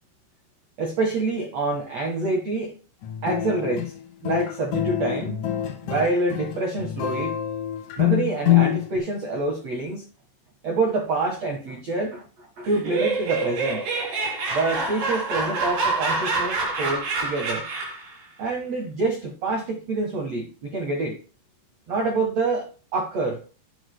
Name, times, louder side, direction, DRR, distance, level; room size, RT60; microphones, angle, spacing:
voice 1, 0.8-2.8 3.2-3.9 4.2-5.4 5.8-7.3 8.0-10.1 10.6-13.9 14.5-17.6 18.4-21.2 21.9-23.4, right 3 dB, 90° right, 1.4 m, -26 dB
sound 1, 3.0-9.0, left 12 dB, 65° left, 2.1 m, -25 dB
Laughter, 12.7-18.1, right 3 dB, 65° right, 5.5 m, -27 dB
9.9 x 6.5 x 2.2 m
omnidirectional pair, 5.6 m